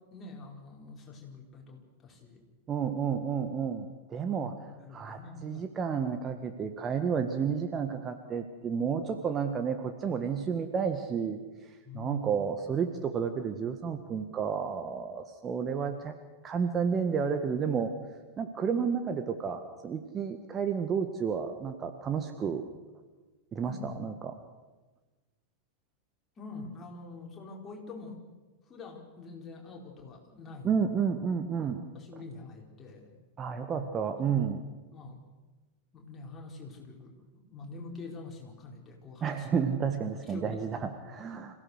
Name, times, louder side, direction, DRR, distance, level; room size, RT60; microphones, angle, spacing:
voice 1, 0.1-2.4 4.2-5.6 11.8-12.3 23.6-23.9 26.4-28.2 28.7-30.8 31.9-33.1 34.2-34.5 34.9-35.2 35.9-39.5 40.2-40.6, left 3 dB, 20° left, 0 dB, 4.9 m, -45 dB
voice 2, 2.7-4.5 4.9-16.1 16.4-17.9 18.4-22.6 23.5-24.4 30.6-31.8 33.4-34.6 39.2-41.6, right 6 dB, 25° right, 6 dB, 1.5 m, -31 dB
26.5 x 16.5 x 6.6 m, 1.2 s
figure-of-eight pair, 90°, 0 cm